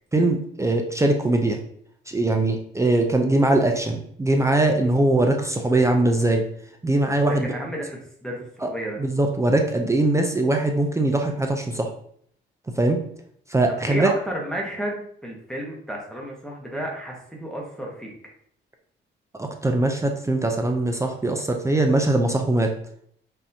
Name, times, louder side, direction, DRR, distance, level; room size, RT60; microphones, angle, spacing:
voice 1, 0.1-1.6 2.1-6.4 6.8-7.5 8.6-8.7 9.0-11.9 12.8-13.0 13.5-14.1 19.4-22.7, right 2 dB, 15° right, 3 dB, 0.5 m, -21 dB
voice 2, 7.3-9.0 13.7-18.1, right 1 dB, 5° left, -3 dB, 1.0 m, -32 dB
5.4 x 2.7 x 2.8 m, 0.65 s
cardioid pair, 90°, 20 cm